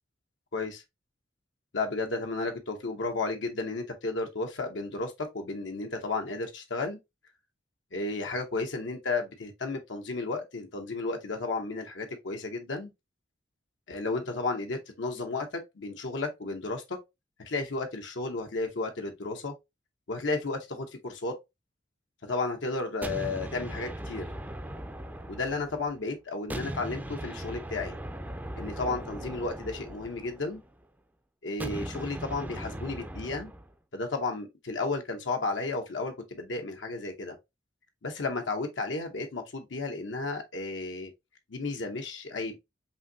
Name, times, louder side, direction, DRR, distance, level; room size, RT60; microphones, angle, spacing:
voice 1, 0.5-0.8 1.7-7.0 7.9-12.9 13.9-17.0 17.4-19.5 20.1-21.4 22.3-24.3 25.3-28.0 28.6-30.6 31.4-33.5 33.9-37.4 38.0-41.1 41.5-42.6, left 3 dB, 80° left, 0.8 m, -33 dB
sound 1, 23.0-26.0 26.5-30.7 31.6-33.7, right 1 dB, 10° right, 0.4 m, -39 dB
5.4 x 2.7 x 2.7 m
head